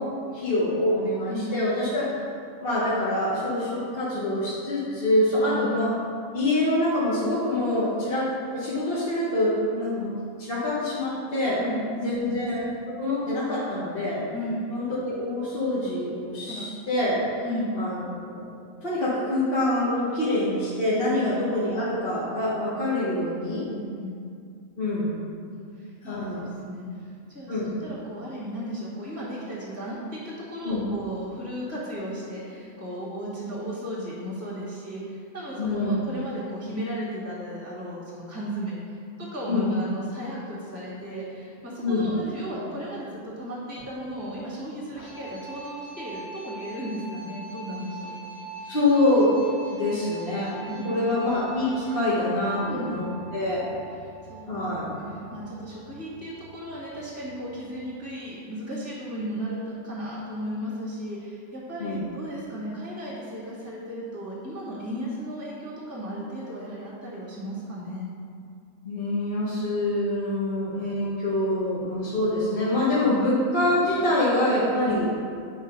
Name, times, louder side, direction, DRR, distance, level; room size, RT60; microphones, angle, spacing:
voice 1, 0.0-2.0 2.6-5.9 6.3-10.1 10.4-11.6 12.0-12.6 13.0-14.2 14.7-17.2 17.7-18.5 18.8-23.6 24.8-25.1 26.0-26.5 27.5-27.8 30.6-30.9 35.6-36.0 39.5-39.7 41.8-42.1 48.7-50.5 50.8-53.1 53.3-53.7 54.5-54.9 61.8-62.1 68.8-75.1, left 1 dB, 45° left, -8 dB, 1.3 m, -25 dB
voice 2, 11.6-12.4 14.3-14.6 16.5-16.6 17.4-17.7 21.1-21.3 23.7-24.1 25.7-38.8 39.2-48.1 50.7-51.1 52.6-52.9 54.3-55.0 55.3-68.1 74.9-75.1, equal, 10° right, -7 dB, 1.7 m, -35 dB
sound 1, 40.3-58.1, right 3 dB, 85° left, 2.0 m, -44 dB
7.9 x 3.8 x 5.3 m, 2.3 s
omnidirectional pair, 1.5 m